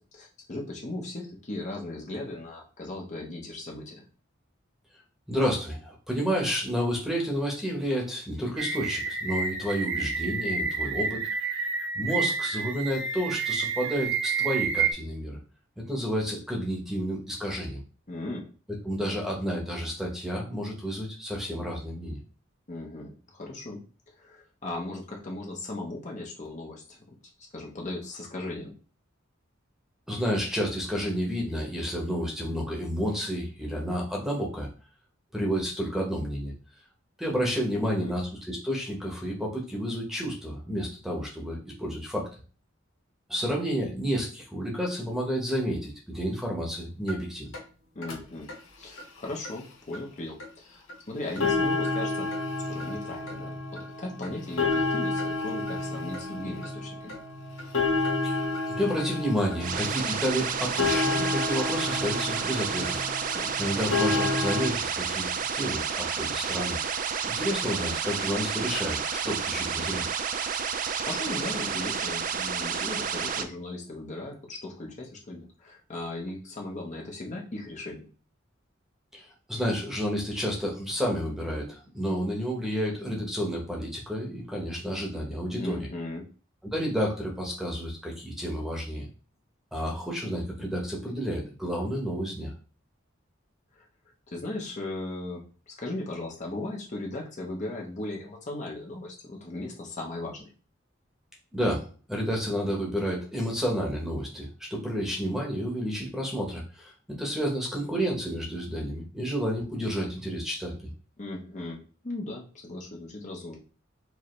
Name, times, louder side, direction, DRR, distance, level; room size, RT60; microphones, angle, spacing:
voice 1, 0.1-4.0 18.1-18.5 22.7-23.8 24.1-27.0 27.5-28.8 37.7-38.1 47.9-52.3 52.6-53.6 54.0-57.1 63.3-63.5 70.7-78.1 85.6-86.2 93.7-93.8 94.3-100.5 111.2-113.6, left 2 dB, 35° left, -1 dB, 0.9 m, -37 dB
voice 2, 5.3-11.2 11.9-15.4 15.8-17.8 18.8-22.2 30.1-34.7 35.3-36.5 37.2-42.3 43.3-47.5 58.2-58.5 58.8-63.1 63.6-65.3 65.5-66.8 67.2-70.0 79.1-85.8 86.7-89.1 89.7-92.5 101.5-110.9, equal, ahead, -2 dB, 1.1 m, -30 dB
sound 1, 8.6-14.9, right 5 dB, 70° right, 0.9 m, -29 dB
sound 2, 47.1-47.2 47.5-47.6 48.0-48.2 48.5-48.6 49.0-49.1 49.4-49.5 49.9-50.0 50.4-50.5 50.9-51.0 51.3-64.7, left 3 dB, 85° left, 1.1 m, -30 dB
sound 3, 59.6-73.4, right 7 dB, 45° right, 0.4 m, -30 dB
4.7 x 2.8 x 3.1 m, 0.38 s
head